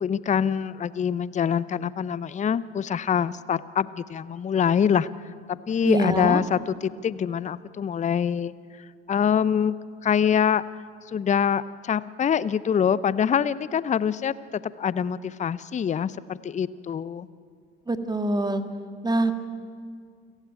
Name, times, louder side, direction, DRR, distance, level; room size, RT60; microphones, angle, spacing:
voice 1, 0.0-5.1 5.5-8.5 9.1-9.7 10.0-10.6 11.1-14.3 14.8-17.3, left 8 dB, 25° left, 19 dB, 0.6 m, -24 dB
voice 2, 5.8-6.4 17.9-18.6 19.0-19.3, right 2 dB, 15° right, 8 dB, 1.9 m, -24 dB
28.5 x 15.5 x 9.0 m, 2.2 s
figure-of-eight pair, 55°, 31 cm